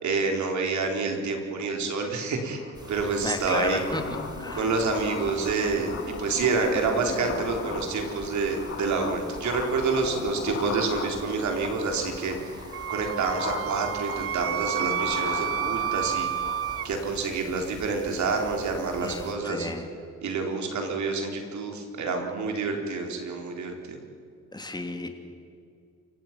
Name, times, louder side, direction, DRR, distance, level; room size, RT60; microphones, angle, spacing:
voice 1, 0.0-2.6 2.9-4.0 4.5-12.6 12.9-16.3 16.8-19.7 20.2-24.0, right 4 dB, 70° right, 3 dB, 4.0 m, -28 dB
sound 1, 2.1-17.4, left 5 dB, 50° left, 2.3 m, -37 dB
sound 2, 2.7-19.3, right 1 dB, 15° right, 3.8 m, -46 dB
voice 2, 3.2-4.0 4.4-4.7 19.0-19.9 24.5-25.1, left 2 dB, 15° left, 5 dB, 2.8 m, -32 dB
Wind instrument woodwind instrument, 12.7-16.9, right 11 dB, 50° right, 0.5 m, -30 dB
28.5 x 16.5 x 6.0 m, 2.4 s
cardioid pair, 90°, 30 cm